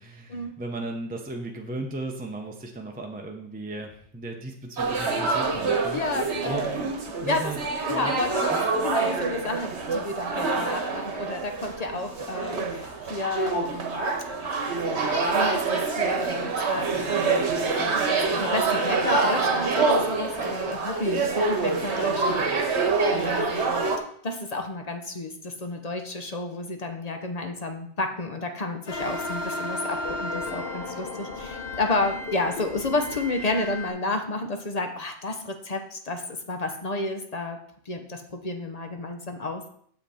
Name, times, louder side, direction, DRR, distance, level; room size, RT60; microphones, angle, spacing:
voice 1, 0.0-8.1 8.5-8.6, right 2 dB, 10° right, 1 dB, 0.7 m, -36 dB
sound 1, 4.8-24.0, right 4 dB, 70° right, 1.3 m, -26 dB
voice 2, 5.9-6.7 7.3-7.5 7.8-8.4 8.8-14.1 14.8-22.5 23.1-23.6 24.2-37.6 37.9-39.7, left 2 dB, 40° left, 5 dB, 0.8 m, -31 dB
sound 2, 28.9-33.9, left 2 dB, 55° left, 1.2 m, -34 dB
7.3 x 5.9 x 4.2 m, 0.63 s
omnidirectional pair, 1.2 m